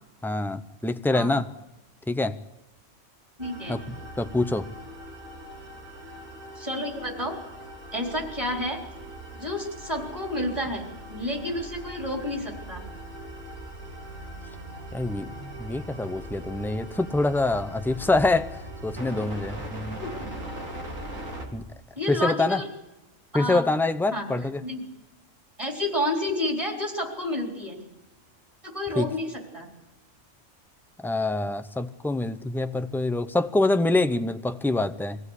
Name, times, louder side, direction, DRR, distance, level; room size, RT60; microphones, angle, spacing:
voice 1, 0.2-1.5 2.1-2.4 3.7-3.8 4.2-4.7 14.9-18.5 18.8-20.0 21.5-21.6 22.1-22.6 23.3-24.6 29.0-29.1 31.0-35.2, left 2 dB, 5° left, 8 dB, 0.3 m, -25 dB
voice 2, 3.4-3.9 6.6-7.4 7.9-8.8 9.3-12.8 20.0-20.4 22.0-22.7 23.3-23.7 24.1-24.3 24.6-24.8 25.6-27.8 28.6-29.7, left 1 dB, 25° right, 1 dB, 4.0 m, -30 dB
sound 1, 3.4-21.4, right 1 dB, 75° right, 3.4 m, -40 dB
23.5 x 16.0 x 8.2 m, 1.0 s
omnidirectional pair, 1.3 m